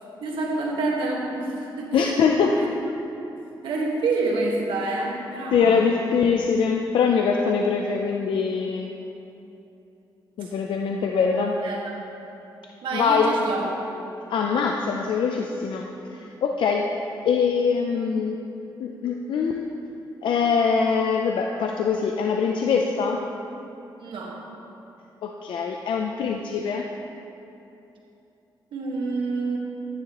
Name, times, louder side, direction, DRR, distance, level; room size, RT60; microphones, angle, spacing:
voice 1, 0.2-2.7 3.6-5.9 10.4-10.5 11.4-12.0 12.8-13.7 24.0-24.4 28.7-29.6, right 3 dB, 90° right, -1 dB, 1.5 m, -28 dB
voice 2, 1.9-2.6 5.5-8.9 10.4-11.5 12.9-13.3 14.3-15.9 16.1-16.9 17.2-18.4 18.8-19.7 20.2-23.2 25.2-26.9, left 5 dB, 80° left, 1 dB, 0.5 m, -23 dB
12.5 x 9.8 x 3.0 m, 2.9 s
cardioid pair, 95°, 8 cm